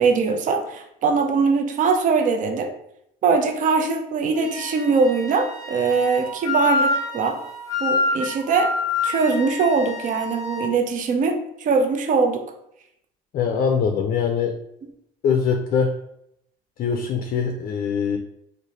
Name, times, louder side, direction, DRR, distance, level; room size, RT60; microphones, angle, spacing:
voice 1, 0.0-2.7 3.2-7.4 7.8-8.7 9.0-12.4, right 4 dB, 50° right, 6 dB, 0.5 m, -21 dB
Wind instrument woodwind instrument, 4.4-10.7, left 3 dB, 20° left, 0.7 m, -27 dB
voice 2, 13.3-14.6 15.2-15.9 16.8-18.2, left 6 dB, 55° left, 4 dB, 0.4 m, -22 dB
3.1 x 2.1 x 3.9 m, 0.77 s
cardioid pair, 110°, 17 cm